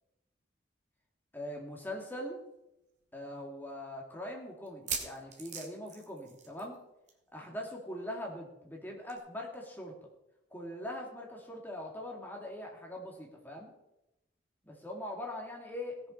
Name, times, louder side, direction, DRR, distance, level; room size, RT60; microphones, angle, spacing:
voice 1, 1.3-2.4 3.1-6.8 7.3-10.0 10.5-13.7 14.6-16.1, left 1 dB, 10° left, 0 dB, 2.4 m, -42 dB
sound 1, 2.0-2.1 2.4-2.5 3.1-3.2 4.7-6.8 7.1-7.3 7.5-7.6 9.1-9.2, right 5 dB, 40° right, 2.3 m, -40 dB
17.5 x 6.9 x 5.6 m, 0.88 s
head